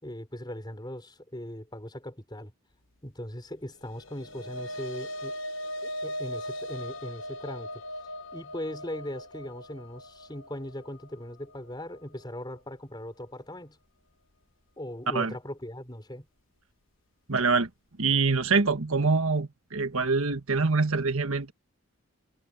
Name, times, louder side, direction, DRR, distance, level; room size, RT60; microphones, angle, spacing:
voice 1, 0.0-2.5 3.0-5.4 5.8-7.8 8.3-13.8 14.8-16.3, left 1 dB, 20° left, 5.2 m, -39 dB
sound 1, 3.8-12.4, equal, 60° left, 1.5 m, -39 dB
voice 2, 17.3-17.7 18.0-21.5, right 4 dB, 75° right, 1.5 m, -25 dB
head